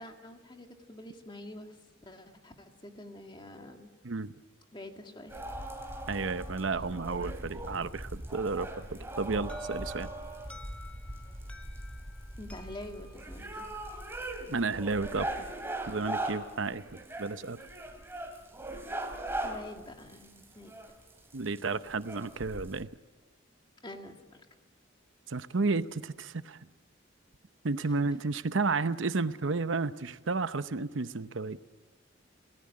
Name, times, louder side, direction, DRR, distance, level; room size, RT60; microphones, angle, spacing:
voice 1, 0.0-1.8 2.0-3.9 4.7-5.4 12.4-13.7 19.4-20.7 23.8-24.5, left 1 dB, 25° left, 4 dB, 2.2 m, -46 dB
sound 1, 5.3-22.8, right 1 dB, 10° right, 2.9 m, -40 dB
voice 2, 6.1-10.1 14.5-15.3 15.9-16.8 17.2-17.6 21.3-22.9 25.3-26.6 27.6-31.6, right 3 dB, 80° right, 13 dB, 0.8 m, -32 dB
Alarm, 9.5-14.3, left 2 dB, 5° left, 1.8 m, -54 dB
27.0 x 18.5 x 8.7 m, 1.2 s
head